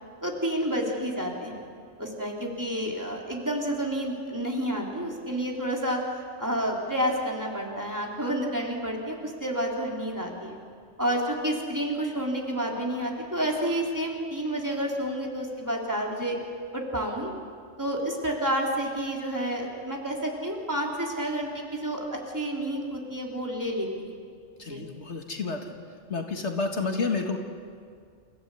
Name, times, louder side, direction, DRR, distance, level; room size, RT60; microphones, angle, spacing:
voice 1, 0.2-1.6 2.0-6.0 6.4-10.6 11.0-16.4 16.7-17.3 17.8-24.1 24.6-24.8, right 1 dB, 15° right, -2 dB, 3.4 m, -30 dB
voice 2, 24.6-25.7 26.1-27.4, left 4 dB, 70° left, 3 dB, 2.0 m, -30 dB
28.5 x 15.5 x 8.3 m, 2.2 s
omnidirectional pair, 1.2 m